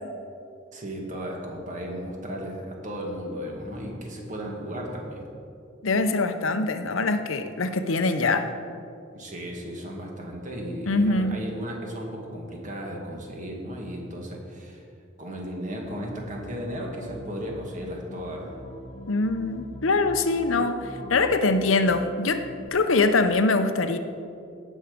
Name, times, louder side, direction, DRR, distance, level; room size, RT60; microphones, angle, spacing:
voice 1, 0.7-5.3 9.1-14.9 15.2-18.5, equal, 40° right, 0 dB, 2.0 m, -35 dB
voice 2, 5.8-8.5 10.9-11.4 19.1-24.0, left 3 dB, 85° left, 9 dB, 0.7 m, -23 dB
sound 1, 15.8-22.7, left 1 dB, 35° left, 1.1 m, -43 dB
17.5 x 6.3 x 5.2 m, 2.4 s
head